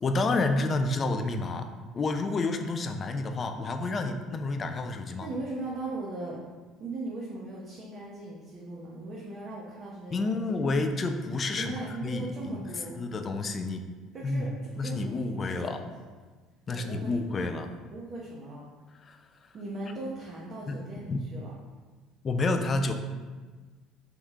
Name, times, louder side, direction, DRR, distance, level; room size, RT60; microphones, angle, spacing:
voice 1, 0.0-5.3 10.1-13.9 14.2-14.5 14.8-15.8 16.7-17.7 19.0-19.2 20.7-20.8 21.1-21.2 22.2-22.9, left 3 dB, 35° left, 6 dB, 0.4 m, -29 dB
voice 2, 5.2-6.4 6.8-10.6 11.5-13.0 14.1-15.9 16.7-17.2 17.9-18.6 19.5-21.5, right 2 dB, 45° right, -5 dB, 0.8 m, -38 dB
3.6 x 3.0 x 3.5 m, 1.4 s
hypercardioid pair, 70°, 0 cm